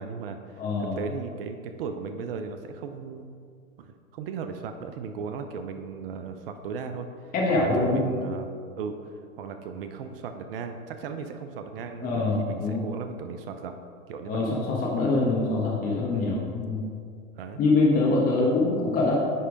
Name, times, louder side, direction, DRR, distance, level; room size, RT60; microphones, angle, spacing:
voice 1, 0.0-3.3 3.8-13.7 14.1-14.4 16.1-16.4 17.4-17.6 18.4-18.5, right 5 dB, 45° right, 7 dB, 0.6 m, -37 dB
voice 2, 0.6-1.0 7.3-8.0 12.0-12.8 14.3-16.8 17.6-19.2, left 3 dB, 20° left, -3 dB, 1.1 m, -24 dB
9.7 x 3.3 x 5.1 m, 2.2 s
hypercardioid pair, 120°, 41 cm